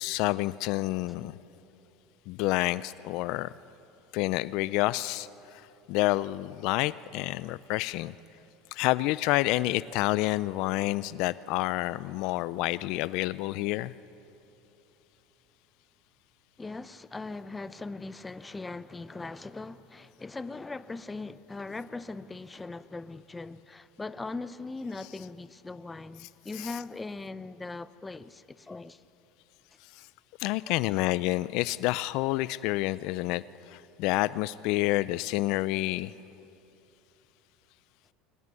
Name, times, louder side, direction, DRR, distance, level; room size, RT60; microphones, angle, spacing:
voice 1, 0.0-1.4 2.3-3.5 4.1-5.3 5.9-8.1 8.7-13.9 26.6-26.7 30.4-33.4 33.7-36.1, left 18 dB, 65° left, 0.5 m, -28 dB
voice 2, 16.6-29.0 30.5-30.8, left 3 dB, 15° left, 0.7 m, -40 dB
23.0 x 19.0 x 9.8 m
supercardioid pair, 115°, 0 cm